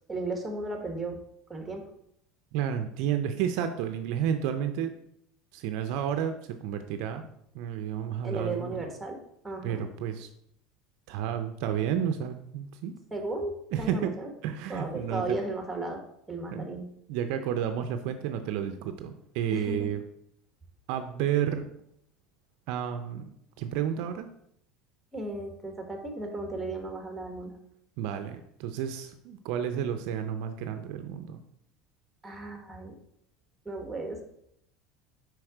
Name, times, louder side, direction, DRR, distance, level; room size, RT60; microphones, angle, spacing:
voice 1, 0.1-1.2 1.5-1.9 8.2-9.9 13.1-14.3 14.7-16.0 16.3-16.9 19.5-19.9 25.1-27.6 32.2-33.0 33.6-34.2, right 2 dB, 10° right, 3 dB, 1.4 m, -35 dB
voice 2, 2.5-4.9 5.5-7.2 7.5-8.9 9.6-10.3 11.1-12.9 13.7-14.1 14.4-15.4 16.5-16.7 17.1-20.0 20.9-21.7 22.7-23.2 23.6-24.3 28.0-31.4, right 9 dB, 70° right, 8 dB, 0.5 m, -31 dB
4.7 x 4.3 x 4.8 m, 0.73 s
supercardioid pair, 110°, 0 cm